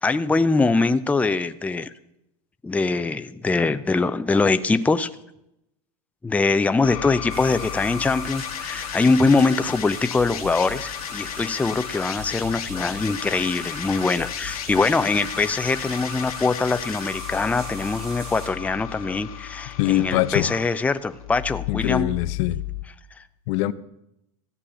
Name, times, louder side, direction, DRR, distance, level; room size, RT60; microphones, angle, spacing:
voice 1, 0.0-1.9 2.6-5.1 6.2-22.1, left 3 dB, 10° left, 0.5 m, -23 dB
sound 1, 6.8-22.8, left 11 dB, 80° left, 1.8 m, -34 dB
sound 2, 7.3-18.5, right 5 dB, 85° right, 2.9 m, -42 dB
voice 2, 19.8-20.5 21.7-22.6 23.5-23.7, left 15 dB, 65° left, 0.7 m, -23 dB
14.5 x 8.3 x 7.0 m
hypercardioid pair, 105°, 18 cm